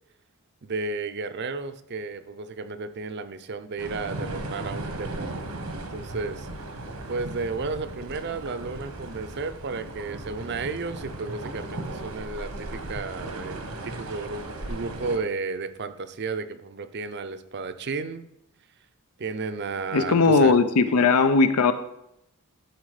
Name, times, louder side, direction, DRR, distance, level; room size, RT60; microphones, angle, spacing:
voice 1, 0.6-5.6 5.9-6.5 7.1-18.3 19.2-20.6, right 4 dB, 50° right, 10 dB, 0.6 m, -33 dB
sound 1, 3.8-15.2, right 2 dB, 85° right, 1.3 m, -36 dB
voice 2, 19.9-21.7, left 4 dB, 90° left, 11 dB, 0.7 m, -19 dB
12.5 x 4.4 x 4.9 m, 0.82 s
head